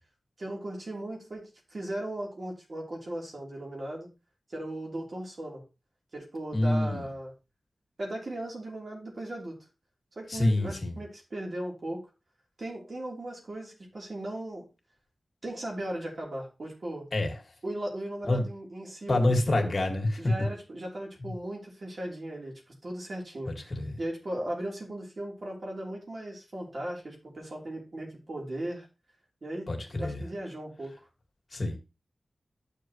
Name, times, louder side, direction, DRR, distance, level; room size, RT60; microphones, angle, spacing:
voice 1, 0.4-4.1 4.5-5.6 6.1-7.3 8.0-9.6 10.2-12.0 12.6-14.7 15.4-17.1 17.6-19.7 20.2-28.9 29.4-30.9, right 1 dB, 55° right, 3.7 m, -37 dB
voice 2, 6.5-7.1 10.3-11.0 17.1-17.3 18.2-18.5 19.1-20.2 23.5-24.0 29.7-30.2 31.5-31.8, left 2 dB, 50° left, 2.1 m, -27 dB
11.0 x 6.8 x 3.2 m
wide cardioid pair, 80°, 0 cm